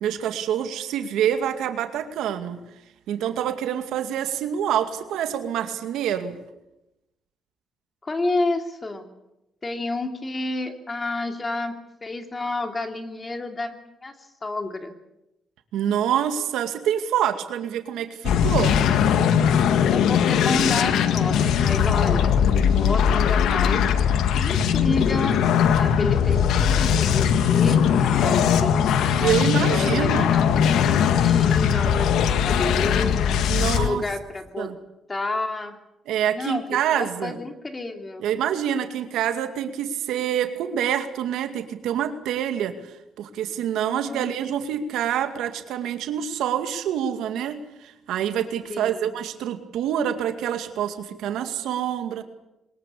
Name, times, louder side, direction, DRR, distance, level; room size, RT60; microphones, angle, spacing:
voice 1, 0.0-2.6 3.1-6.4 15.7-18.8 29.2-30.3 33.5-34.0 34.6-34.7 36.1-37.4 38.2-42.7 43.2-52.2, right 9 dB, 85° right, 8 dB, 2.3 m, -26 dB
voice 2, 8.0-9.1 9.6-11.8 12.0-14.1 14.4-14.9 19.9-23.9 24.4-29.3 29.7-30.5 30.8-33.4 33.8-34.7 35.1-35.8 36.3-38.2 43.8-44.4 48.7-49.1, left 2 dB, 25° left, 6 dB, 3.0 m, -30 dB
sound 1, 18.2-33.9, left 8 dB, 80° left, 1.7 m, -20 dB
22.5 x 21.0 x 8.5 m, 0.93 s
cardioid pair, 90°, 0 cm